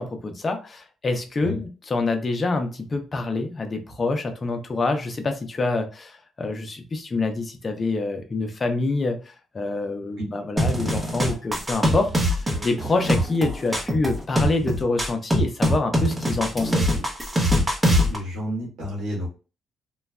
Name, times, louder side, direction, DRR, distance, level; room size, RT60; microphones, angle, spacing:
voice 1, 0.0-16.9, left 3 dB, 35° left, 5 dB, 0.6 m, -26 dB
sound 1, 10.6-18.2, equal, 20° right, 0.8 m, -23 dB
voice 2, 18.1-19.3, equal, 80° right, -4 dB, 1.5 m, -30 dB
3.1 x 2.2 x 2.3 m, 0.34 s
cardioid pair, 90°, 0 cm